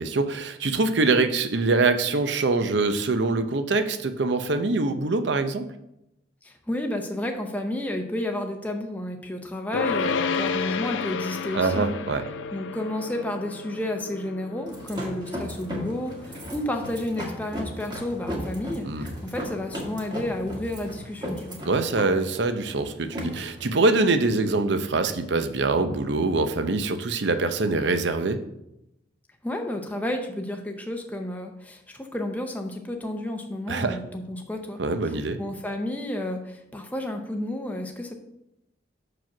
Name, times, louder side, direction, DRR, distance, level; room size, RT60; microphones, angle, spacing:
voice 1, 0.0-5.7 11.5-12.2 18.8-19.1 21.6-28.4 33.7-34.0 34.8-35.4, right 3 dB, 65° right, 9 dB, 0.6 m, -24 dB
voice 2, 6.4-11.9 12.5-21.6 29.4-34.8 35.4-38.1, left 1 dB, 10° left, 3 dB, 0.6 m, -31 dB
sound 1, 9.7-21.1, left 5 dB, 80° left, 0.5 m, -33 dB
sound 2, 14.7-25.3, equal, 25° right, 1.4 m, -36 dB
6.0 x 4.9 x 5.9 m, 0.85 s
head